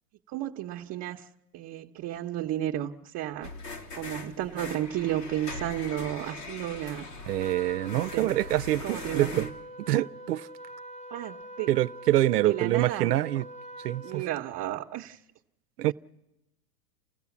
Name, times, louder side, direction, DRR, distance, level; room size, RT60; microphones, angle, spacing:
voice 1, 0.3-1.2 1.5-3.5 4.0-7.1 7.9-8.3 8.8-9.5 11.1-11.7 12.4-13.1 14.0-15.2 15.8-15.9, right 13 dB, 35° right, 1.0 m, -33 dB
sound 1, 3.4-9.5, left 3 dB, 90° left, 3.5 m, -41 dB
voice 2, 7.3-9.5 9.9-10.5 11.7-13.5 13.8-14.2 15.8-15.9, right 14 dB, 80° right, 0.8 m, -26 dB
Trumpet, 7.4-14.3, equal, 15° left, 0.8 m, -44 dB
29.0 x 15.0 x 7.2 m
hypercardioid pair, 120°, 47 cm